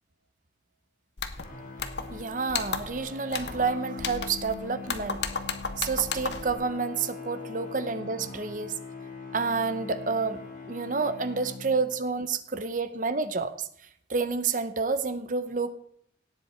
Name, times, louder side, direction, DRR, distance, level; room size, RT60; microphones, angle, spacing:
sound 1, 1.2-1.5 1.8-2.2 2.5-3.0 3.3-3.6 4.0-4.6 4.9-6.5, left 5 dB, 70° left, 1.1 m, -33 dB
sound 2, 1.3-12.1, left 4 dB, 50° left, 3.0 m, -42 dB
voice 1, 2.1-5.2 5.8-8.8 9.3-10.4 10.7-13.7 14.1-15.7, right 4 dB, 45° right, 11 dB, 0.8 m, -29 dB
17.5 x 7.7 x 4.4 m, 0.65 s
head